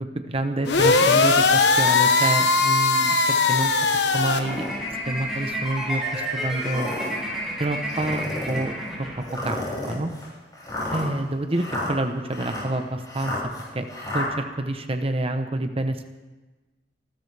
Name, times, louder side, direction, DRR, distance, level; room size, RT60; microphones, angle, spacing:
voice 1, 0.0-4.7 5.1-6.9 7.6-8.7 9.2-10.1 10.9-13.3 13.7-13.9 14.1-16.2, right 1 dB, 35° right, 7 dB, 1.0 m, -28 dB
sound 1, 0.7-4.4, left 4 dB, 70° left, 1.2 m, -19 dB
sound 2, 4.0-4.8 5.4-5.5 6.5-7.2 7.9-8.6 9.3-14.3, left 1 dB, 25° left, 7.1 m, -32 dB
sound 3, 4.4-9.7, right 1 dB, ahead, 6.6 m, -31 dB
27.0 x 13.0 x 3.5 m, 1.2 s
head